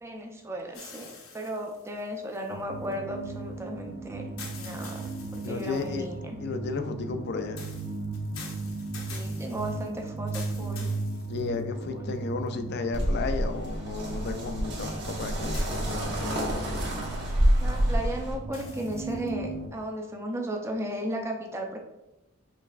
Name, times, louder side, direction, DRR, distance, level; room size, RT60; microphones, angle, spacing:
voice 1, 0.0-6.4 9.1-10.9 11.9-12.1 17.6-21.8, right 1 dB, 15° right, 2 dB, 0.4 m, -35 dB
sound 1, 0.7-2.9 4.4-6.0 7.6-11.8 12.5-12.6 15.5-16.4 18.5-19.3, left 5 dB, 80° left, 0.8 m, -46 dB
sound 2, 2.5-19.7, right 3 dB, 90° right, 0.8 m, -37 dB
voice 2, 5.4-6.1 6.4-7.6 11.3-16.8, left 4 dB, 50° left, 8 dB, 0.4 m, -33 dB
sound 3, 12.9-18.3, equal, 50° right, 1.2 m, -28 dB
5.2 x 3.2 x 2.4 m, 0.93 s
head